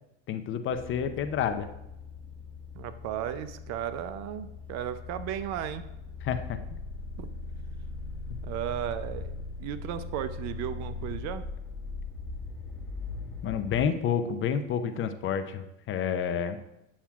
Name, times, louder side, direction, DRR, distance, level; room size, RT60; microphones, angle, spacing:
voice 1, 0.3-1.7 6.2-6.6 13.4-16.6, left 7 dB, 35° left, 9 dB, 0.6 m, -29 dB
sound 1, 0.7-13.8, left 3 dB, 5° left, 1.7 m, -40 dB
voice 2, 2.8-5.8 7.2-7.3 8.4-11.4, right 10 dB, 50° right, 12 dB, 0.6 m, -35 dB
8.6 x 6.9 x 2.4 m, 0.89 s
hypercardioid pair, 100°, 35 cm